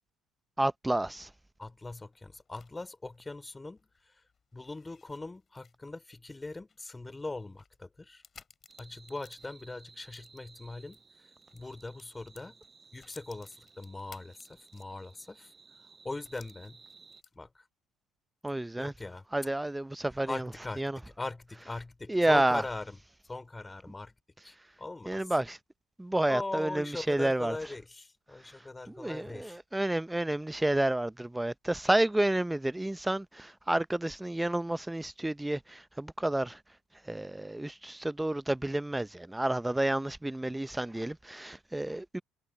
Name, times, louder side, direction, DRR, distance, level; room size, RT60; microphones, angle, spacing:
voice 1, 0.6-1.3 18.4-18.9 19.3-20.4 20.8-21.0 22.1-22.6 25.1-25.6 26.0-27.6 28.9-36.6 37.1-42.2, right 1 dB, 10° right, 0.6 m, -30 dB
voice 2, 1.6-4.2 4.5-8.2 8.8-12.6 12.9-15.5 16.0-16.8 17.3-17.7 18.8-19.3 20.3-23.0 23.2-24.1 24.4-25.3 26.3-29.6, left 2 dB, 20° left, 3.0 m, -41 dB
sound 1, 1.9-11.0 11.3-15.2 15.6-15.7 16.2-17.6, left 6 dB, 40° left, 4.0 m, -60 dB
sound 2, 8.7-17.2, right 4 dB, 30° right, 6.5 m, -58 dB
supercardioid pair, 65°, 0 cm